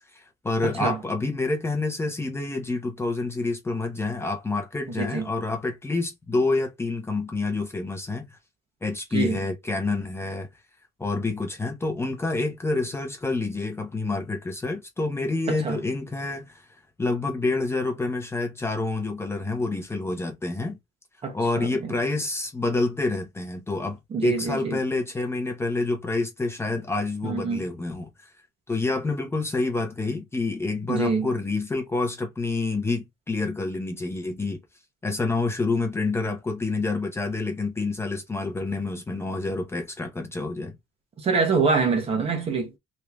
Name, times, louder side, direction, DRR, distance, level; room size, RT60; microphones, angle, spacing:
voice 1, 0.1-8.4 8.8-10.5 11.0-16.7 17.0-20.8 21.3-28.3 28.7-34.6 35.0-40.7, left 3 dB, 15° left, 0.8 m, -28 dB
voice 2, 0.6-1.0 5.0-5.3 9.1-9.4 15.5-15.8 21.2-21.3 21.6-21.9 24.1-24.8 27.2-27.6 30.9-31.3 41.2-42.8, right 4 dB, 35° right, 1.1 m, -25 dB
3.2 x 2.7 x 3.4 m
cardioid pair, 150°, 18 cm